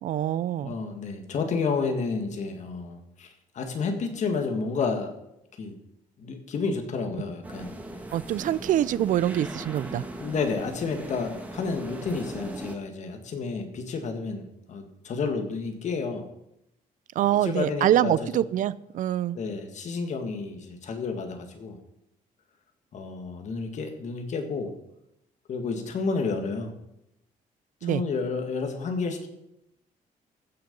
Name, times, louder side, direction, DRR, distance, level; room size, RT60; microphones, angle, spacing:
voice 1, 0.0-0.8 8.1-10.0 17.2-19.4 27.8-28.0, right 12 dB, 60° right, 19 dB, 0.5 m, -25 dB
voice 2, 0.6-5.1 5.6-5.8 6.2-7.8 10.2-16.2 17.4-18.1 19.3-21.8 22.9-24.7 25.5-26.7 27.8-29.3, left 4 dB, 50° left, 5 dB, 1.9 m, -30 dB
sound 1, 7.4-12.8, right 1 dB, 10° right, 1.4 m, -39 dB
15.0 x 6.7 x 5.3 m, 0.84 s
cardioid pair, 140°, 15 cm